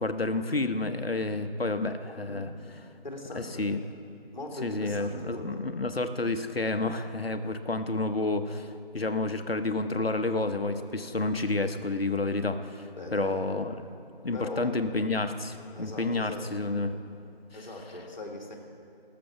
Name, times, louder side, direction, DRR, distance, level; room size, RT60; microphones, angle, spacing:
voice 1, 0.0-2.5 3.3-3.8 4.6-13.8 14.2-17.0 17.5-17.6, left 2 dB, 75° left, 8 dB, 0.9 m, -30 dB
voice 2, 3.0-3.7 4.3-5.6 12.9-13.5 14.3-14.7 15.7-16.5 17.5-18.6, left 2 dB, 50° left, 2 dB, 1.9 m, -40 dB
19.0 x 6.9 x 5.9 m, 2.6 s
figure-of-eight pair, 160°, 30 cm